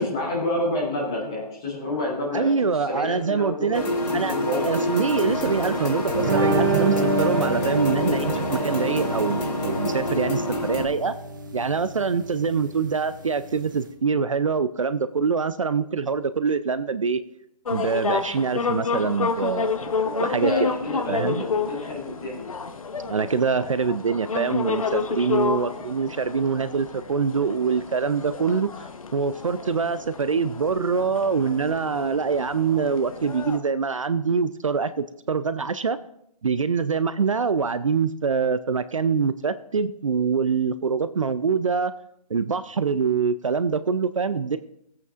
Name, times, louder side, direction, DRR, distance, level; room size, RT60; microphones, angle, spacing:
voice 1, 0.0-2.6 2.9-4.7 20.2-22.5 25.4-25.7, left 1 dB, 5° left, -3 dB, 0.6 m, -29 dB
voice 2, 2.3-3.8 4.1-4.4 4.6-11.2 11.5-17.2 17.7-20.5 21.1-21.4 23.1-28.7 29.1-36.0 36.4-41.9 42.3-44.6, right 5 dB, 50° right, 13 dB, 0.4 m, -24 dB
sound 1, 3.7-10.9, left 1 dB, 85° left, 2.8 m, -27 dB
sound 2, 6.1-13.9, right 2 dB, 30° right, 0.8 m, -28 dB
sound 3, 17.7-33.6, left 5 dB, 55° left, 0.9 m, -30 dB
16.5 x 8.3 x 2.4 m, 0.74 s
hypercardioid pair, 175°, 21 cm